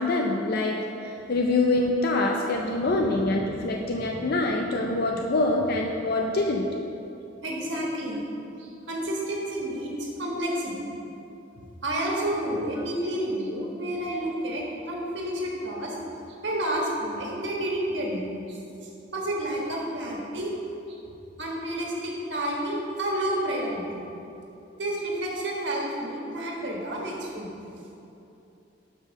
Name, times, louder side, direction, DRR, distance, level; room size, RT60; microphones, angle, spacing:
voice 1, 0.0-6.7, left 2 dB, 50° left, 1 dB, 0.4 m, -25 dB
voice 2, 2.7-3.4 3.9-4.5 4.8-5.2 7.4-8.2 8.6-10.9 11.8-15.9 16.4-18.6 19.1-20.5 21.4-23.9 24.8-27.5, right 1 dB, 65° right, -2 dB, 1.4 m, -30 dB
5.5 x 5.2 x 6.3 m, 2.8 s
head